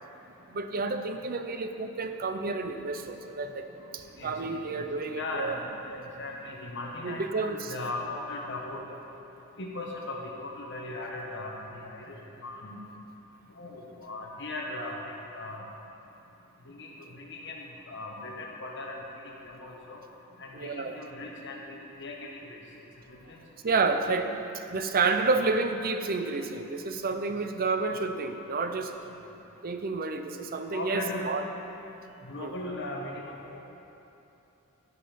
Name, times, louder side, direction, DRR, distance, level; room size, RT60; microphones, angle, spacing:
voice 1, 0.5-3.7 3.9-5.5 7.0-7.7 20.5-21.0 23.6-24.3 24.7-28.9 29.6-31.4 32.4-32.5, right 4 dB, 40° right, 7 dB, 0.6 m, -30 dB
voice 2, 4.2-5.5 5.9-9.0 9.6-12.2 12.4-12.8 13.6-15.6 16.7-20.0 20.4-22.6 23.1-23.4 23.7-23.8 24.1-24.3 25.1-25.4 27.2-27.3 30.7-31.3 32.2-33.6, left 2 dB, 55° left, -1 dB, 1.3 m, -38 dB
15.5 x 5.3 x 5.9 m, 3.0 s
head